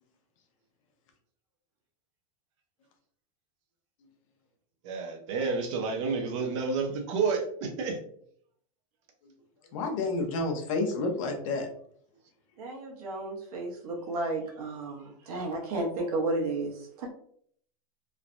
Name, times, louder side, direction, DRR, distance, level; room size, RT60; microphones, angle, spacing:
voice 1, 4.9-8.0, right 4 dB, 55° right, 4 dB, 0.6 m, -30 dB
voice 2, 9.7-11.7, left 3 dB, 60° left, 3 dB, 0.7 m, -29 dB
voice 3, 12.6-17.1, right 2 dB, 85° right, 0 dB, 1.0 m, -33 dB
3.2 x 2.1 x 2.5 m, 0.65 s
supercardioid pair, 170°, 19 cm